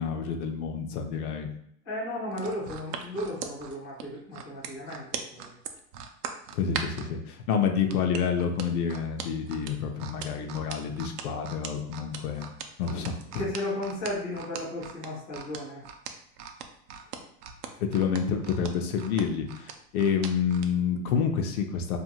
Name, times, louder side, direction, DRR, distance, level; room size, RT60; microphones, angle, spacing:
voice 1, 0.0-1.5 6.5-12.5 12.8-13.4 17.8-22.0, left 6 dB, 65° left, 5 dB, 0.6 m, -28 dB
voice 2, 1.8-5.6 13.4-15.8, left 1 dB, 15° left, -8 dB, 0.4 m, -34 dB
sound 1, 2.3-7.1 7.9-20.7 21.1-21.3, right 8 dB, 70° right, 0.5 m, -39 dB
2.5 x 2.4 x 2.8 m, 0.69 s
supercardioid pair, 155°, 50 cm